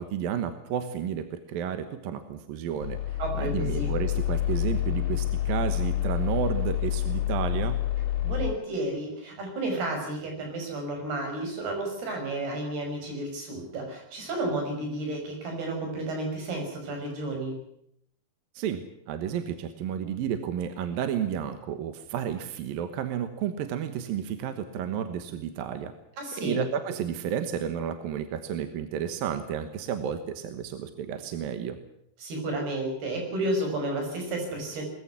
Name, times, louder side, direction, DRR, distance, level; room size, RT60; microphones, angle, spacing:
voice 1, 0.0-7.8 18.5-25.9 26.4-31.8, right 8 dB, 70° right, 9 dB, 2.9 m, -32 dB
sound 1, 2.8-8.5, left 12 dB, 80° left, 4.0 m, -28 dB
voice 2, 3.2-3.9 8.2-17.6 26.2-26.6 32.2-34.8, right 2 dB, 90° right, 3 dB, 7.8 m, -32 dB
21.5 x 14.5 x 9.9 m, 0.75 s
omnidirectional pair, 4.4 m